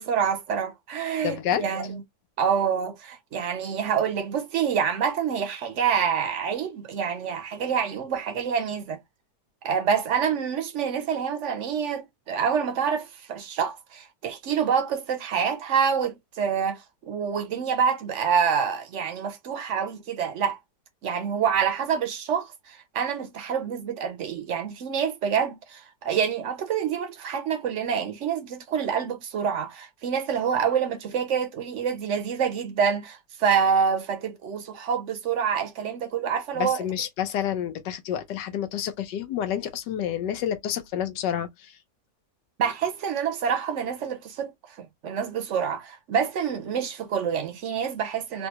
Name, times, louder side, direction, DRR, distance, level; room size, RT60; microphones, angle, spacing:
voice 1, 0.0-2.0 2.4-9.0 9.6-20.6 21.0-36.8 42.6-44.5 44.8-48.5, right 7 dB, 65° right, 0.7 m, -27 dB
voice 2, 1.2-1.7 36.5-41.7, left 9 dB, 85° left, 1.4 m, -29 dB
3.7 x 2.2 x 2.8 m
omnidirectional pair, 1.8 m